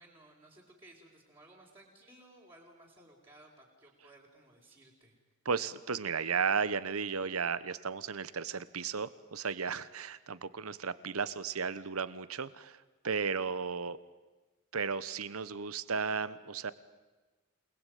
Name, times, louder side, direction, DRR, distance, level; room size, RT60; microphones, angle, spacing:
voice 1, 0.0-5.2, right 1 dB, 25° right, -4 dB, 4.4 m, -58 dB
voice 2, 5.4-14.0 14.7-16.7, right 5 dB, 85° right, 16 dB, 1.1 m, -34 dB
28.0 x 20.0 x 9.4 m, 1.2 s
head